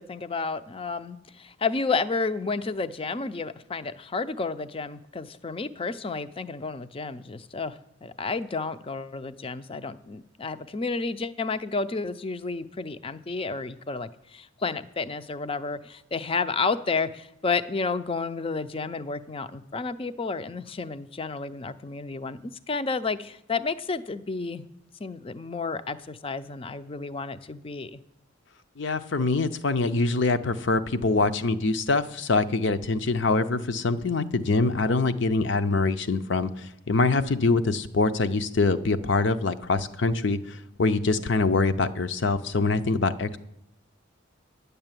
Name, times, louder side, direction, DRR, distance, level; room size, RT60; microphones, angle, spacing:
voice 1, 0.0-24.7 25.0-28.0, left 4 dB, 30° left, 12 dB, 0.5 m, -31 dB
voice 2, 28.8-43.4, left 3 dB, 60° left, 11 dB, 0.7 m, -24 dB
10.5 x 6.8 x 9.0 m, 0.79 s
head